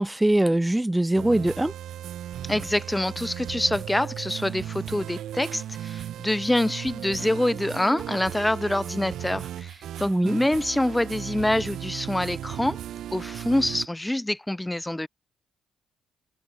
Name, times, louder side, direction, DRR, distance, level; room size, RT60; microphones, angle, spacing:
voice 1, 0.0-1.7 10.1-10.4, right 1 dB, 10° right, 4.2 m, -22 dB
sound 1, 1.1-13.9, right 11 dB, 65° right, 6.9 m, -36 dB
voice 2, 2.4-12.8 13.1-15.1, left 1 dB, 10° left, 3.7 m, -26 dB
hypercardioid pair, 50°, 0 cm